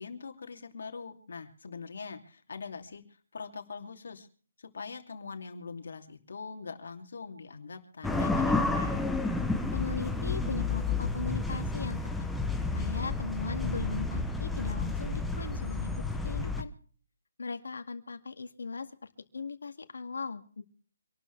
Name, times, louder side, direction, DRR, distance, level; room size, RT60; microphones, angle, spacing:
voice 1, 0.0-3.0 3.3-4.3 4.6-9.1, left 5 dB, 55° left, 5 dB, 2.7 m, -42 dB
sound 1, 8.0-16.6, left 3 dB, ahead, 0.6 m, -31 dB
voice 2, 9.7-12.3 12.7-16.7 17.4-20.6, left 4 dB, 75° left, 7 dB, 2.2 m, -38 dB
26.5 x 13.0 x 3.4 m, 0.43 s
hypercardioid pair, 180°, 0 cm